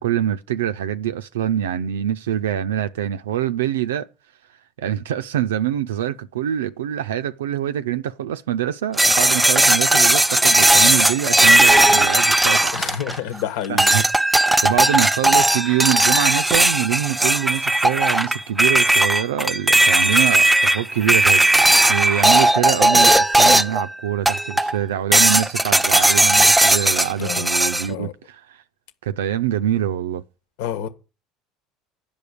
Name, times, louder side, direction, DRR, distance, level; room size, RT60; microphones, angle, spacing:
voice 1, 0.0-4.1 4.8-12.8 13.1-13.4 13.7-14.3 14.6-28.6 29.0-30.2, right 11 dB, 90° right, 0.4 m, -25 dB
sound 1, 9.0-13.4 13.8-23.9 24.3-24.8 25.1-27.9, right 1 dB, 10° right, 0.5 m, -16 dB
voice 2, 12.7-13.9 27.2-27.5 27.9-28.1 30.6-30.9, left 10 dB, 75° left, 1.6 m, -28 dB
10.5 x 5.3 x 8.4 m
hypercardioid pair, 80°, 0 cm